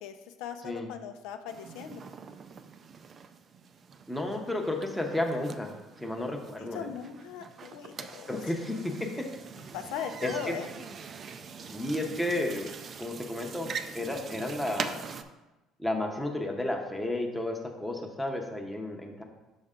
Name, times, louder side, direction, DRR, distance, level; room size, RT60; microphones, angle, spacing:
voice 1, 0.0-2.0 6.6-8.4 9.7-10.7, left 8 dB, 85° left, 7 dB, 0.5 m, -39 dB
sound 1, 1.5-15.2, right 6 dB, 35° right, 0.4 m, -43 dB
voice 2, 4.1-6.9 8.3-9.3 10.2-10.6 11.7-12.7 13.0-15.0 15.8-19.2, left 1 dB, ahead, 1 dB, 0.7 m, -32 dB
5.8 x 5.4 x 3.7 m, 1.1 s
cardioid pair, 145°, 0 cm